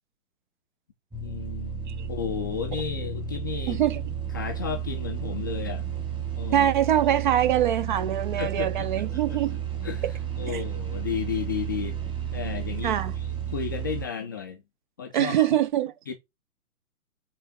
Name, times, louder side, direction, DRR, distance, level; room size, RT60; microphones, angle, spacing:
sound 1, 1.1-14.1, right 8 dB, 10° right, 1.9 m, -32 dB
voice 1, 1.2-1.7 2.1-3.8 4.3-5.9 6.4-6.7 8.3-9.4 9.8-12.0 12.3-14.6 15.0-15.5 16.1-16.2, left 7 dB, 15° left, 0.4 m, -33 dB
voice 2, 3.7-4.0 6.5-9.6 10.5-10.6 12.8-13.1 15.1-15.9, right 11 dB, 35° right, 0.6 m, -24 dB
8.7 x 3.7 x 3.6 m
hypercardioid pair, 130°, 44 cm